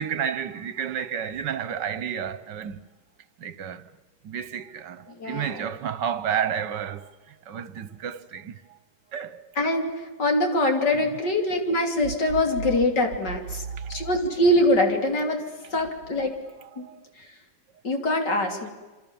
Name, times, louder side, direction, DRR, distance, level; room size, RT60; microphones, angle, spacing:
voice 1, 0.0-2.8 3.4-3.9 4.2-7.1 7.5-8.6 9.1-9.4 10.9-11.1 13.7-14.1 16.8-17.0, right 8 dB, 75° right, 1.7 m, -31 dB
voice 2, 5.2-5.6 9.6-9.9 10.2-13.6 13.9-15.4 15.7-16.3 16.8-16.9 17.8-18.7, left 1 dB, 70° left, 3.8 m, -23 dB
27.5 x 26.0 x 7.2 m
omnidirectional pair, 1.9 m